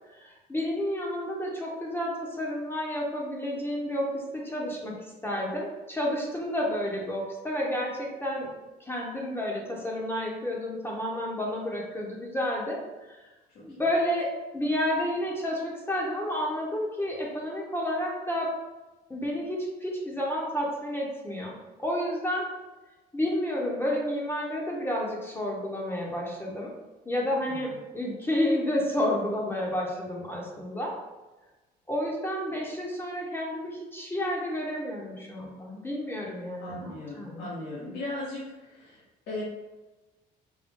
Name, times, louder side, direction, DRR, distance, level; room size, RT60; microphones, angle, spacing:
voice 1, 0.2-4.9 5.2-8.5 8.8-12.8 13.1-13.2 13.6-18.5 19.1-22.5 23.1-26.7 27.0-30.9 31.9-37.5, left 1 dB, 15° left, -2 dB, 0.9 m, -30 dB
voice 2, 36.6-39.0 39.3-39.4, left 2 dB, 80° left, -8 dB, 1.4 m, -37 dB
5.3 x 2.2 x 3.6 m, 1.1 s
cardioid pair, 110°, 17 cm